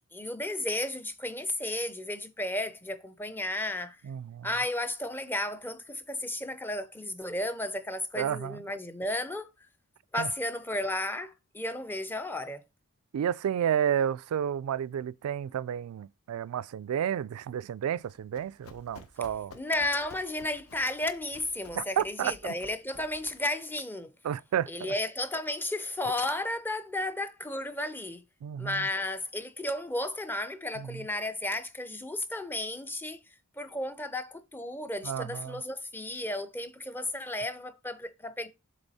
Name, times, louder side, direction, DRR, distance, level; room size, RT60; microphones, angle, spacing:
voice 1, 0.1-4.0 4.4-9.5 10.1-12.6 19.6-24.1 24.7-28.2 28.6-33.2 33.6-38.5, left 1 dB, 10° left, 0.5 m, -33 dB
voice 2, 4.0-4.5 8.2-8.6 10.2-10.3 13.1-19.6 21.7-22.5 24.2-24.9 28.4-28.9 30.8-31.0 35.0-35.6, right 9 dB, 80° right, 0.3 m, -31 dB
Run, 18.0-23.6, left 3 dB, 80° left, 0.9 m, -53 dB
7.1 x 3.3 x 4.1 m
head